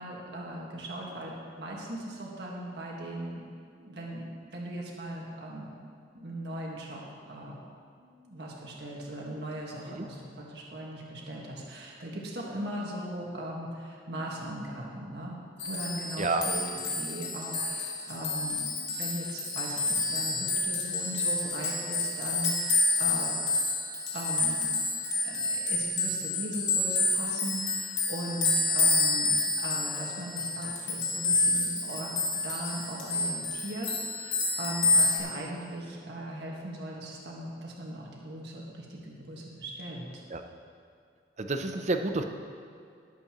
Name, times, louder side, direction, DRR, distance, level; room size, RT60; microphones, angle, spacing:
voice 1, 0.0-3.4 3.8-5.7 6.1-7.0 7.3-7.6 8.0-15.4 15.6-23.4 24.1-24.8 25.2-40.2, right 1 dB, 65° right, -3 dB, 1.8 m, -39 dB
sound 1, 15.6-35.2, left 3 dB, 80° left, 2.1 m, -29 dB
voice 2, 16.2-16.5 40.3-40.4 41.4-42.2, right 3 dB, 40° right, 6 dB, 0.7 m, -29 dB
19.0 x 8.1 x 3.1 m, 2.3 s
head